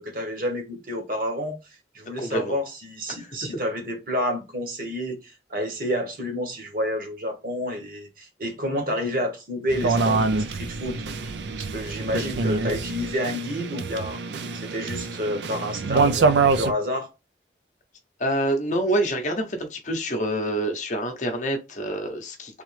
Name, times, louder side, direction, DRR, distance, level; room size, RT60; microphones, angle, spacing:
voice 1, 0.0-1.6 1.9-11.3 11.6-14.2 14.5-16.3 16.6-17.1, equal, 50° right, 1.2 m, -29 dB
voice 2, 2.2-2.6 3.2-3.4 18.2-22.6, right 1 dB, 40° left, 0.7 m, -27 dB
sound 1, 9.7-16.7, right 4 dB, 70° right, 0.4 m, -25 dB
3.6 x 3.0 x 3.1 m
head